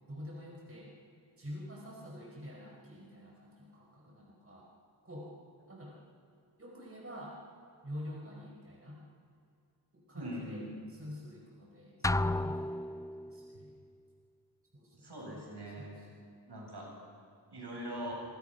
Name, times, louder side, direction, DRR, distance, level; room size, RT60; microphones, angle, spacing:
voice 1, 0.1-0.9 1.4-4.7 5.0-5.3 5.7-6.0 6.6-7.4 7.8-9.0 10.1-10.6 11.0-12.7 13.3-13.7 14.7-15.4 15.8-16.2, equal, 30° right, -2 dB, 5.0 m, -47 dB
voice 2, 10.1-10.7 15.0-16.0 16.5-16.9 17.5-18.1, right 1 dB, 65° right, -2 dB, 7.7 m, -42 dB
sound 1, 12.0-13.5, left 2 dB, 10° left, 0.5 m, -32 dB
26.0 x 23.5 x 5.7 m, 2.4 s
cardioid pair, 50°, 42 cm